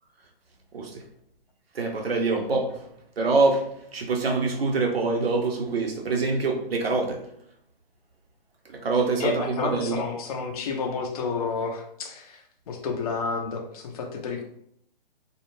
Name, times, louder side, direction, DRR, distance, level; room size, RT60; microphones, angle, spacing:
voice 1, 1.7-2.8 3.2-3.6 3.9-7.2 8.7-10.0, right 3 dB, 85° right, 2 dB, 0.7 m, -25 dB
voice 2, 9.2-14.4, left 4 dB, 40° left, 2 dB, 0.5 m, -30 dB
2.4 x 2.0 x 3.0 m, 0.70 s
hypercardioid pair, 140°, 29 cm